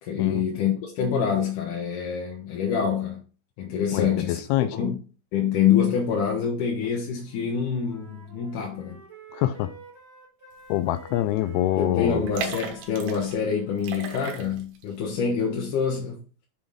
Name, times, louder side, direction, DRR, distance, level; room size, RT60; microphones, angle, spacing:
voice 1, 0.0-3.2 3.6-5.0 5.3-9.0 11.8-16.2, left 7 dB, 65° left, 2.2 m, -26 dB
voice 2, 3.9-4.8 9.3-9.7 10.7-12.2, left 13 dB, 80° left, 2.5 m, -25 dB
Wind instrument woodwind instrument, 7.1-13.9, right 5 dB, 30° right, 1.3 m, -49 dB
sound 1, 10.9-11.1 11.4-11.5 12.2-13.4 13.8-14.8 15.2-15.3, right 5 dB, 75° right, 3.0 m, -35 dB
7.4 x 3.9 x 5.0 m
omnidirectional pair, 4.6 m